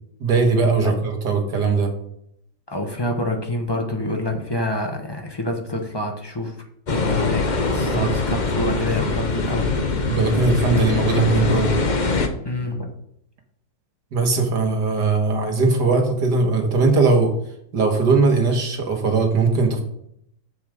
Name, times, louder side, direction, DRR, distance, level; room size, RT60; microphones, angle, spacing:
voice 1, 0.2-1.9 7.7-8.1 10.1-11.7 14.1-17.3 17.7-19.8, right 4 dB, 65° right, 3 dB, 2.1 m, -19 dB
voice 2, 2.7-6.5 6.9-9.7 12.4-12.9, left 1 dB, 15° left, 3 dB, 1.1 m, -27 dB
sound 1, 6.9-12.3, left 3 dB, 40° left, 0.7 m, -23 dB
7.2 x 7.1 x 5.2 m, 0.73 s
omnidirectional pair, 2.0 m